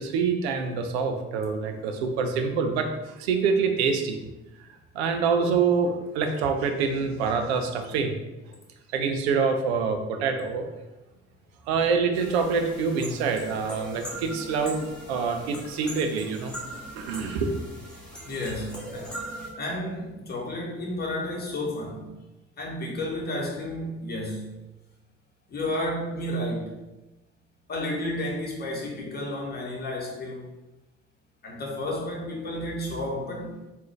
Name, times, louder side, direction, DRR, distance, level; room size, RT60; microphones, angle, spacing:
voice 1, 0.0-4.2 4.9-8.2 8.5-8.6 8.9-10.7 11.7-16.5 16.9-17.5, right 5 dB, 70° right, 6 dB, 0.5 m, -26 dB
sound 1, 12.1-19.5, right 1 dB, ahead, 1.0 m, -40 dB
voice 2, 18.2-19.1 19.6-22.1 22.6-24.5 25.5-26.7 27.7-30.4 31.4-33.6, left 1 dB, 30° left, -2 dB, 1.0 m, -31 dB
3.6 x 2.4 x 3.2 m, 1.0 s
figure-of-eight pair, 50°, 33 cm